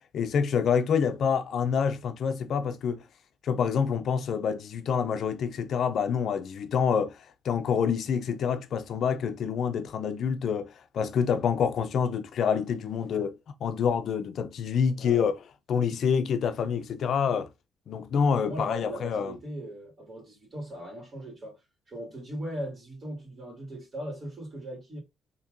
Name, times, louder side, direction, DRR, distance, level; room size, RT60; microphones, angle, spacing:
voice 1, 0.1-3.0 3.4-7.2 7.4-15.3 15.7-17.5 17.9-19.3, left 7 dB, 65° left, 0.5 m, -27 dB
voice 2, 15.0-15.3 18.4-21.6 21.9-25.0, right 1 dB, 40° right, 2.2 m, -39 dB
4.4 x 2.9 x 2.6 m
cardioid pair, 75°, 0 cm